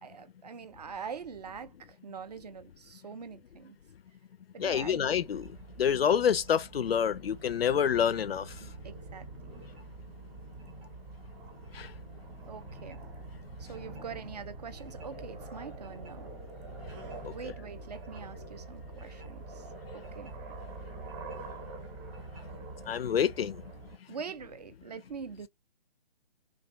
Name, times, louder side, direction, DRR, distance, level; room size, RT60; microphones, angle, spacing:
voice 1, 0.0-3.8 4.5-5.0 8.6-9.6 12.5-13.0 13.6-16.3 17.3-19.7 19.9-20.3 24.1-25.5, right 6 dB, 45° right, 0.4 m, -44 dB
voice 2, 4.6-5.5 5.8-8.5 11.7-11.9 17.2-17.3 22.9-23.6, left 8 dB, 75° left, 0.4 m, -27 dB
sound 1, 4.6-24.0, right 2 dB, 20° right, 0.8 m, -45 dB
2.6 x 2.3 x 2.5 m
figure-of-eight pair, 135°, 30 cm